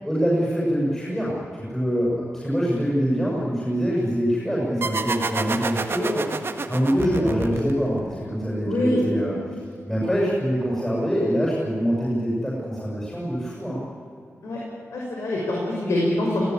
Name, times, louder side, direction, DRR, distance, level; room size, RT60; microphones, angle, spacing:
voice 1, 0.0-6.2 6.7-9.3 9.8-13.8, equal, 10° left, -6 dB, 7.8 m, -24 dB
sound 1, 4.8-8.1, right 4 dB, 50° right, 1.8 m, -29 dB
voice 2, 8.6-9.0 14.4-14.6 14.9-16.4, left 1 dB, 85° left, -3 dB, 5.9 m, -24 dB
21.0 x 17.5 x 10.0 m, 2.6 s
wide cardioid pair, 85°, 5 cm